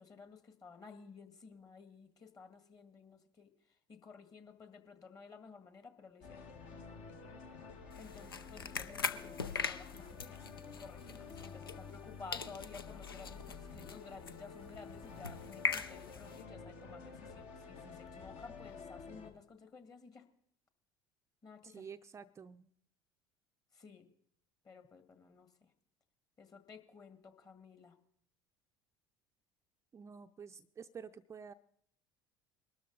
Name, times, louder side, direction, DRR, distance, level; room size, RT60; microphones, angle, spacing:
voice 1, 0.0-3.5 3.9-6.4 8.0-10.5 10.8-20.3 21.4-21.9 23.7-24.1 24.6-25.7 26.4-28.0, left 5 dB, 30° left, 9 dB, 1.8 m, -54 dB
sound 1, 6.2-19.3, left 5 dB, 60° left, 1.7 m, -50 dB
sound 2, 7.9-12.1 12.3-16.4, left 5 dB, 85° left, 0.6 m, -41 dB
voice 2, 21.6-22.7 29.9-31.5, right 6 dB, 25° right, 8 dB, 0.5 m, -50 dB
21.0 x 12.5 x 4.0 m, 0.65 s
figure-of-eight pair, 65°, 12 cm